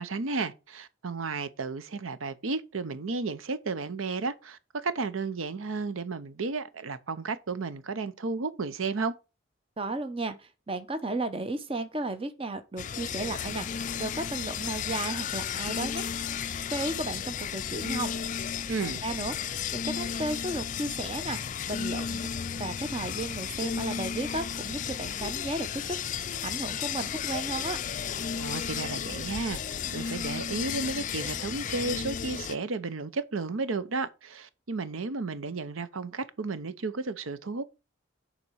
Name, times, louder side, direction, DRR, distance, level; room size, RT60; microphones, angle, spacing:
voice 1, 0.0-9.1 18.7-19.0 28.4-29.6 29.9-37.6, right 4 dB, 85° right, 0.7 m, -33 dB
voice 2, 9.8-16.0 16.7-18.1 18.8-22.3 22.6-27.8, right 2 dB, 30° right, 0.8 m, -34 dB
sound 1, 12.8-32.6, left 7 dB, 40° left, 0.4 m, -33 dB
6.9 x 4.3 x 6.2 m
head